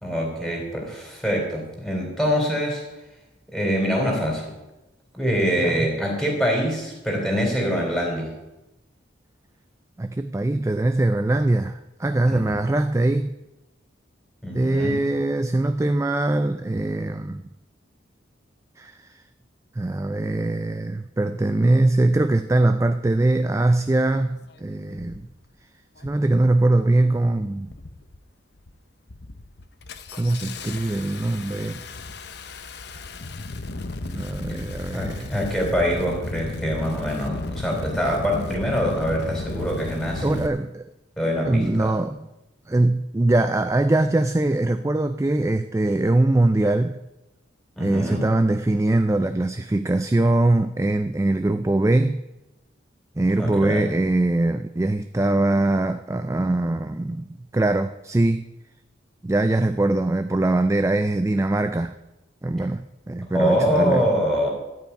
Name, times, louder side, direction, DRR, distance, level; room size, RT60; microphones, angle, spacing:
voice 1, 0.0-2.8 3.5-4.5 5.1-8.4 12.3-12.6 14.4-15.0 34.9-40.4 41.2-41.9 47.8-48.3 53.4-53.9 63.3-64.5, equal, ahead, -1 dB, 3.7 m, -24 dB
voice 2, 10.0-13.3 14.5-17.4 18.8-19.0 19.8-25.3 26.0-27.7 30.1-31.8 34.1-35.3 40.2-40.8 41.5-42.3 42.7-47.0 47.8-52.2 53.2-57.3 57.5-58.5 59.2-62.0 62.4-64.1, right 2 dB, 15° right, 10 dB, 0.3 m, -22 dB
Engine starting, 24.1-24.2 24.9-25.3 26.0-26.3 26.6-27.2 27.6-28.2 28.5-28.8 29.1-40.5, left 2 dB, 60° left, 0.8 m, -34 dB
13.0 x 5.8 x 9.4 m, 0.97 s
head